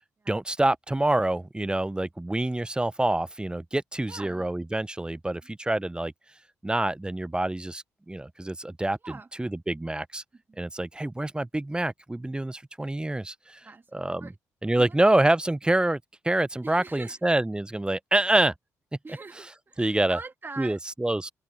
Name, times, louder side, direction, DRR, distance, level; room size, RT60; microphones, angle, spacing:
voice 1, 0.3-6.1 6.6-10.2 10.6-14.3 14.6-16.0 16.2-18.5 19.8-20.2 20.6-21.3, right 1 dB, 10° right, 1.0 m, -26 dB
voice 2, 4.1-4.5 9.0-9.3 10.5-10.6 13.6-13.9 14.2-14.3 14.8-15.0 16.6-17.2 19.0-20.8, right 3 dB, 25° right, 2.2 m, -43 dB
open air
figure-of-eight pair, 40°, 8 cm